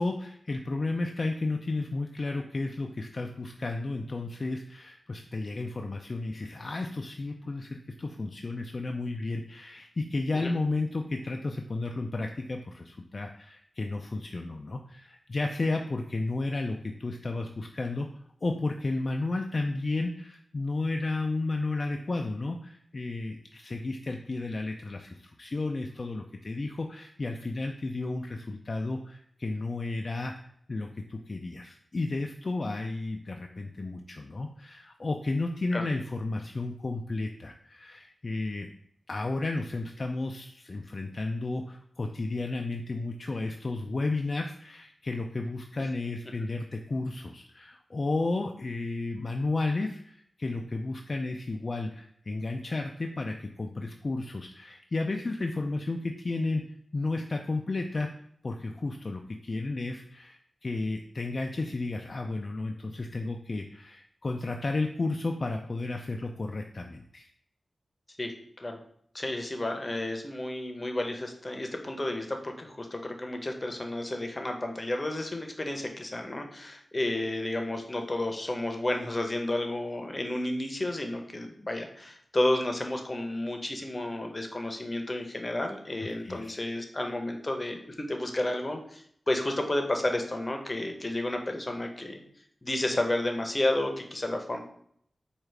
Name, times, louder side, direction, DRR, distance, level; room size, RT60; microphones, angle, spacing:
voice 1, 0.0-18.1 18.4-30.3 30.7-38.7 39.1-56.6 56.9-58.1 58.4-67.3 86.0-86.6, left 2 dB, 55° left, 3 dB, 0.3 m, -33 dB
voice 2, 69.1-92.2 92.6-94.6, left 1 dB, 35° left, 4 dB, 0.7 m, -31 dB
4.6 x 2.4 x 3.2 m, 0.66 s
cardioid pair, 40°, 0 cm